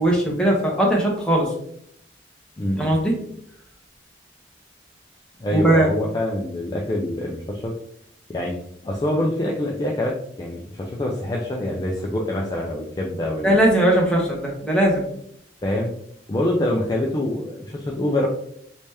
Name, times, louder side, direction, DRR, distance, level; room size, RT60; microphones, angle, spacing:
voice 1, 0.0-1.5 2.8-3.1 5.5-5.9 13.4-15.0, right 1 dB, 5° left, -3 dB, 0.8 m, -19 dB
voice 2, 2.6-2.9 5.4-7.7 8.3-8.5 8.8-13.5 15.6-15.9 16.3-18.3, left 1 dB, 20° left, -1 dB, 0.3 m, -25 dB
3.3 x 2.8 x 3.2 m, 0.71 s
head